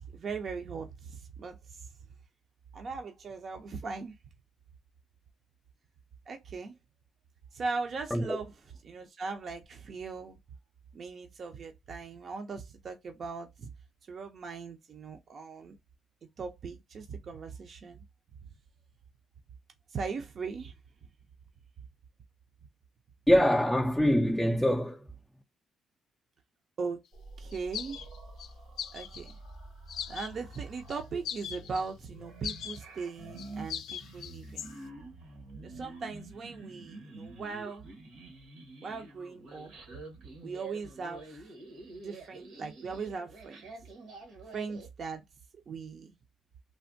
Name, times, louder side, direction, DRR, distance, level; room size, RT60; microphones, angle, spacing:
voice 1, 0.1-1.9 2.7-4.2 6.3-6.7 7.5-8.5 8.8-10.4 10.9-13.7 14.1-15.8 16.4-18.0 19.9-20.7 26.8-27.0 27.4-28.1 28.9-29.3 30.1-34.7 35.6-37.9 38.8-39.7 40.4-41.5 42.0-43.6 44.5-45.2 45.7-46.2, right 4 dB, 50° right, 0.5 m, -39 dB
voice 2, 23.3-25.1, equal, ahead, 0.4 m, -24 dB
sound 1, 27.1-44.9, right 2 dB, 85° right, 1.2 m, -48 dB
sound 2, 27.5-28.5 28.8-29.3 29.9-30.6 30.9-31.0 31.2-31.8 32.4-32.8 33.4-34.7, left 8 dB, 75° left, 0.4 m, -39 dB
3.3 x 2.1 x 2.5 m
cardioid pair, 90°, 0 cm